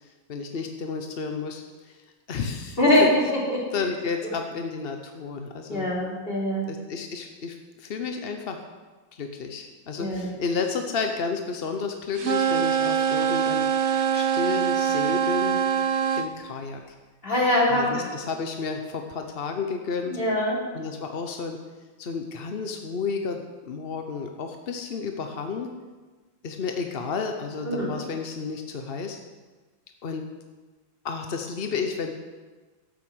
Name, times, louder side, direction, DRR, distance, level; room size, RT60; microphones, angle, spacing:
voice 1, 0.3-2.0 2.3-3.1 3.7-5.9 6.7-8.6 9.1-13.7 14.1-15.6 16.2-16.8 17.7-20.2 20.7-21.6 22.0-25.7 26.4-29.2 30.0-30.3 31.0-32.1, left 5 dB, 50° left, 5 dB, 0.7 m, -31 dB
voice 2, 2.8-3.6 5.7-6.6 10.0-10.3 17.2-18.1 20.1-20.6 27.6-28.0, left 1 dB, 25° left, -5 dB, 3.6 m, -23 dB
sound 1, 12.2-16.3, right 8 dB, 60° right, 0.7 m, -24 dB
13.0 x 9.1 x 6.2 m, 1.3 s
omnidirectional pair, 2.1 m